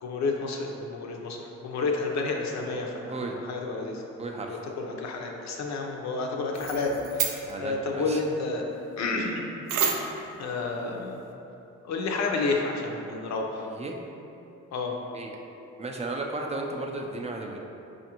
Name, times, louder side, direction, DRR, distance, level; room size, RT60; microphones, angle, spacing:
voice 1, 0.0-3.2 3.4-4.0 4.5-8.6 9.0-9.4 10.4-11.2 11.8-13.7 14.7-14.9, left 3 dB, 65° left, 1 dB, 0.6 m, -30 dB
voice 2, 4.2-4.6 7.4-8.2 13.6-13.9 15.1-15.4 15.8-17.6, right 2 dB, 20° right, 1 dB, 0.4 m, -34 dB
sound 1, 6.5-7.6 9.7-10.3, right 6 dB, 85° right, 0.4 m, -29 dB
5.1 x 2.5 x 2.8 m, 2.8 s
cardioid pair, 90°, 30 cm